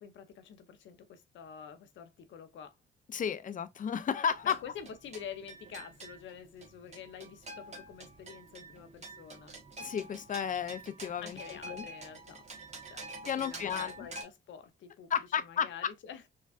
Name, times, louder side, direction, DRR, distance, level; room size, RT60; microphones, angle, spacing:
voice 1, 0.0-2.8 4.4-9.6 11.2-12.5 12.9-16.2, left 8 dB, 75° left, 0.7 m, -48 dB
voice 2, 3.1-4.6 9.8-11.9 13.2-14.1 15.1-15.7, left 8 dB, 40° left, 0.5 m, -33 dB
sound 1, 4.3-14.2, right 2 dB, 35° right, 1.2 m, -47 dB
4.5 x 2.4 x 2.4 m
cardioid pair, 90°, 20 cm